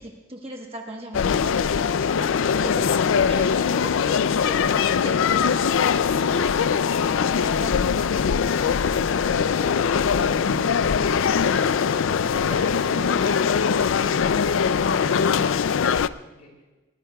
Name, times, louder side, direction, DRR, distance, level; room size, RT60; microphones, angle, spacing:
voice 1, 0.0-1.9 2.6-3.5 3.8-4.2 4.4-5.8 7.1-7.8 11.1-13.4 13.8-13.9 14.2-14.3, right 1 dB, 30° right, 2 dB, 1.2 m, -39 dB
sound 1, 1.1-16.1, left 6 dB, 80° left, 0.4 m, -21 dB
sound 2, 7.6-15.0, right 2 dB, 75° right, 6.5 m, -54 dB
voice 2, 12.0-16.6, left 1 dB, 50° left, -1 dB, 5.1 m, -42 dB
22.0 x 19.0 x 2.3 m, 1.1 s
head